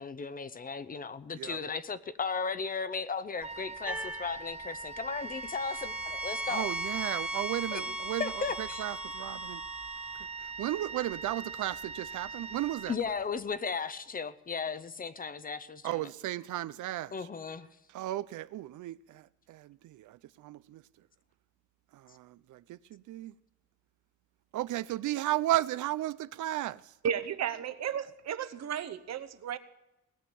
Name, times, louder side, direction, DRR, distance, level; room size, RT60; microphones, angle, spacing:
voice 1, 0.0-6.7 7.7-7.8 8.2-8.8 12.9-16.0 17.1-17.7, left 5 dB, 30° left, 0.6 m, -36 dB
Wind instrument woodwind instrument, 3.4-13.5, right 4 dB, 20° right, 0.5 m, -42 dB
sound 1, 3.9-4.4 5.1-10.2, right 1 dB, 5° right, 0.9 m, -38 dB
voice 2, 6.5-9.6 10.4-12.9 15.8-17.3 17.9-20.8 21.9-23.3 24.5-26.9, right 15 dB, 90° right, 0.5 m, -35 dB
voice 3, 27.0-29.6, right 8 dB, 60° right, 0.9 m, -34 dB
19.0 x 9.0 x 6.9 m
cardioid pair, 130°, 30 cm